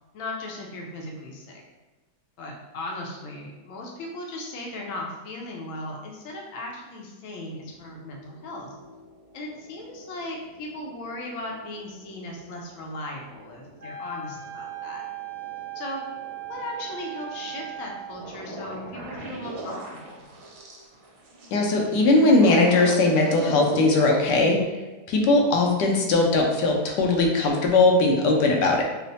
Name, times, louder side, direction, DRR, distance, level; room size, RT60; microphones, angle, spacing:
voice 1, 0.1-1.6 2.4-8.7 9.3-15.0 15.7-16.0 16.5-20.2, left 2 dB, 60° left, -1 dB, 0.9 m, -37 dB
sound 1, 7.6-24.6, right 2 dB, 70° right, 1.2 m, -40 dB
Wind instrument woodwind instrument, 13.8-18.2, right 9 dB, 90° right, 1.2 m, -37 dB
voice 2, 21.5-24.6 25.1-28.8, left 2 dB, 90° left, 0 dB, 1.3 m, -19 dB
3.2 x 2.1 x 3.9 m, 1.2 s
omnidirectional pair, 1.8 m